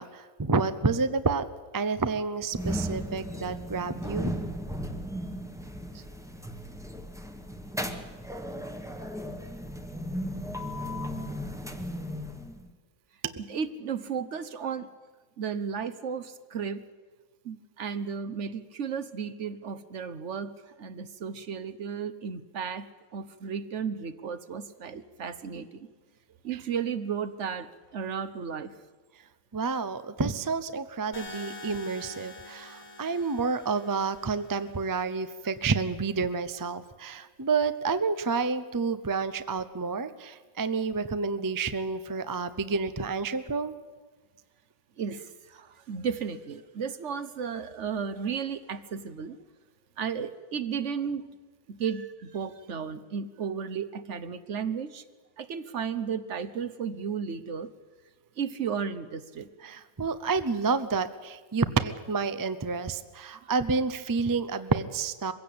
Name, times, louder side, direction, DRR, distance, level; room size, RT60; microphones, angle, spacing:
voice 1, 0.0-1.5 1.7-4.4 5.9-6.0 13.2-13.3 26.5-26.6 29.5-43.7 59.6-65.3, right 4 dB, 25° right, 12 dB, 0.5 m, -29 dB
sound 1, 2.5-12.7, equal, ahead, 1.1 m, -36 dB
voice 2, 13.5-14.9 15.4-16.8 17.5-20.5 20.8-22.9 23.1-25.7 26.4-27.7 27.9-28.7 45.0-45.2 45.9-49.4 50.0-51.2 51.8-55.0 55.4-57.7 58.4-59.5, right 6 dB, 60° right, 13 dB, 1.2 m, -33 dB
sound 2, 31.1-35.2, left 2 dB, 75° left, 3.5 m, -46 dB
22.5 x 16.0 x 8.6 m, 1.4 s
omnidirectional pair, 1.5 m